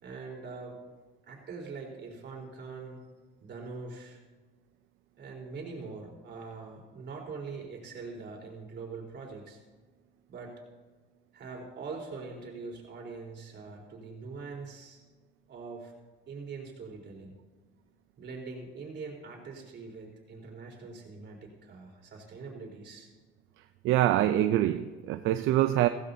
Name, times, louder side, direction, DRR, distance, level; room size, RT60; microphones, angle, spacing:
voice 1, 0.0-0.8 1.2-3.0 3.4-4.2 5.2-9.6 10.3-10.5 11.3-15.0 15.5-15.9 16.3-17.4 18.2-23.1, right 4 dB, 60° right, -1 dB, 3.9 m, -43 dB
voice 2, 23.8-25.9, right 13 dB, 80° right, 10 dB, 0.5 m, -25 dB
16.5 x 16.0 x 2.8 m, 1.3 s
supercardioid pair, 80°, 20 cm